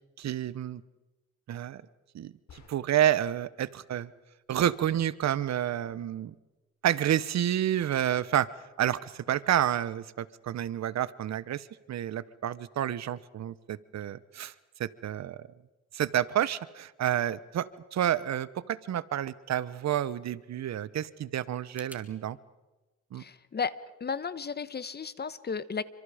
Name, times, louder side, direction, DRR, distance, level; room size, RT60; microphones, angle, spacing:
voice 1, 0.2-0.8 1.5-1.8 2.1-4.1 4.5-6.3 6.8-8.5 8.8-14.5 14.8-15.5 15.9-22.4 23.1-23.2, right 11 dB, 60° right, 18 dB, 1.0 m, -29 dB
sound 1, 2.5-3.2, left 6 dB, 65° left, 5.5 m, -55 dB
sound 2, 21.7-22.1, right 1 dB, 5° right, 3.3 m, -56 dB
voice 2, 23.1-23.7 24.0-25.8, left 5 dB, 35° left, 16 dB, 1.2 m, -34 dB
29.5 x 25.5 x 5.0 m, 1.1 s
cardioid pair, 90°, 30 cm